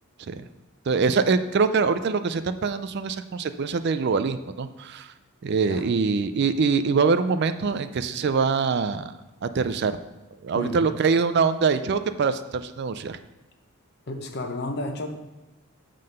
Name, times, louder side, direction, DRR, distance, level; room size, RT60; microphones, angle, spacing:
voice 1, 0.9-5.1 5.4-9.1 9.4-10.0 10.4-13.2, right 5 dB, 50° right, 11 dB, 0.4 m, -24 dB
voice 2, 14.1-15.1, left 2 dB, 50° left, 4 dB, 0.9 m, -31 dB
7.4 x 3.8 x 6.5 m, 1.1 s
head